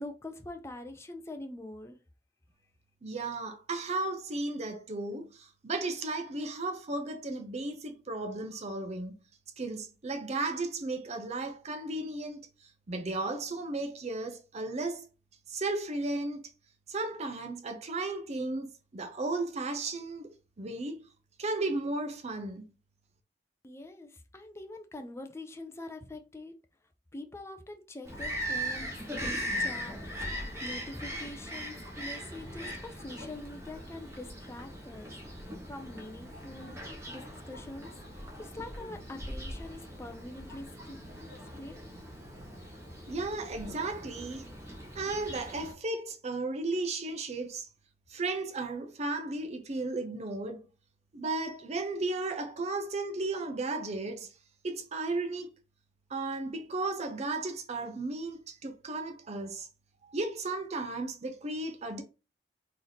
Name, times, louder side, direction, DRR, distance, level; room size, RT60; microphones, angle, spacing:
voice 1, 0.0-2.0 23.6-26.6 27.1-28.9 29.2-30.3 30.6-35.1 35.7-36.8 37.1-37.9 38.4-41.0 41.6-41.8, left 2 dB, 15° left, 0.4 m, -44 dB
voice 2, 3.0-9.1 9.6-12.5 12.9-15.1 15.5-16.5 16.9-21.1 21.4-22.6 43.1-44.4 44.9-47.7 48.1-50.6 51.1-54.3 54.6-55.5 56.1-59.7 60.1-62.0, right 2 dB, 40° right, 0.6 m, -34 dB
Bird vocalization bird call bird song, 28.0-45.7, equal, 15° right, 1.0 m, -40 dB
3.1 x 2.7 x 3.9 m
head